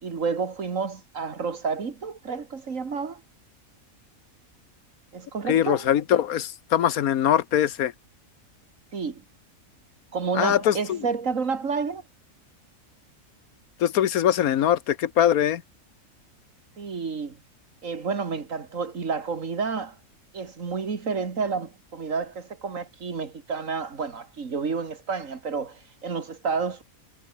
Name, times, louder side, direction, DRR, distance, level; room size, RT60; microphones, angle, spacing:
voice 1, 0.0-3.2 5.1-5.9 8.9-9.2 10.1-12.0 16.8-17.4 17.8-20.0 20.3-26.8, right 5 dB, 65° right, 2.3 m, -30 dB
voice 2, 5.5-7.9 10.3-11.0 13.8-15.6, left 10 dB, 85° left, 1.4 m, -22 dB
omnidirectional pair, 1.5 m